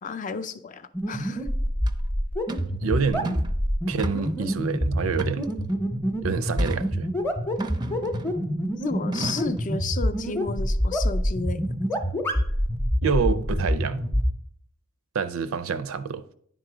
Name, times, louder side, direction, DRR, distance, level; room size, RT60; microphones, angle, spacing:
voice 1, 0.0-1.5 8.8-11.6, left 4 dB, 40° left, 0.4 m, -33 dB
sound 1, 0.9-14.3, equal, 10° left, 0.7 m, -26 dB
Bucket of Junk Drop In, 1.9-2.0 2.5-2.7 3.1-3.5 4.0-4.4 5.1-5.8 6.6-6.9 7.6-8.5 9.1-9.6, right 3 dB, 20° right, 0.4 m, -36 dB
voice 2, 2.8-3.5 3.9-5.5 6.2-7.1 13.0-14.0 15.1-16.2, right 5 dB, 75° right, 0.4 m, -27 dB
9.8 x 3.8 x 4.9 m
head